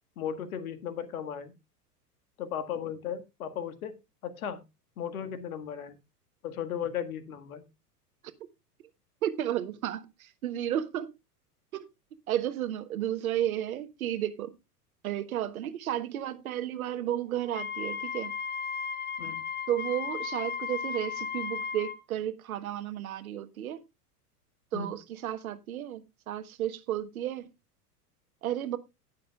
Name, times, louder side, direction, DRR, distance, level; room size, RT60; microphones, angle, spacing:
voice 1, 0.2-1.5 2.4-3.9 4.2-4.6 5.0-6.0 6.4-7.7 19.2-19.5 24.7-25.0, left 8 dB, 60° left, 1.8 m, -36 dB
voice 2, 9.2-11.1 11.7-11.9 12.3-14.5 15.0-18.3 19.7-23.8 24.7-27.5 28.4-28.8, right 11 dB, 60° right, 1.3 m, -33 dB
Wind instrument woodwind instrument, 17.5-22.0, left 6 dB, 20° left, 1.1 m, -35 dB
19.0 x 6.6 x 2.3 m
figure-of-eight pair, 90°, 47 cm